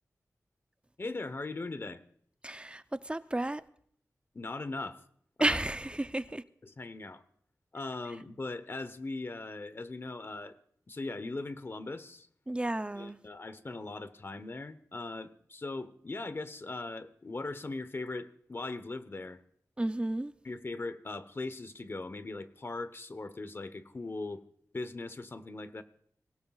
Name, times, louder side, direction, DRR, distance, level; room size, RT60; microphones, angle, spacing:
voice 1, 1.0-2.0 4.3-5.0 5.4-5.6 6.6-7.2 7.7-10.6 10.9-12.3 12.9-19.4 20.4-24.4 24.7-25.8, left 3 dB, 40° left, 0.9 m, -39 dB
voice 2, 2.4-3.6 5.4-6.4 12.5-13.2 19.8-20.3, right 1 dB, 20° right, 0.6 m, -32 dB
25.0 x 16.5 x 2.4 m
wide cardioid pair, 75°, 6 cm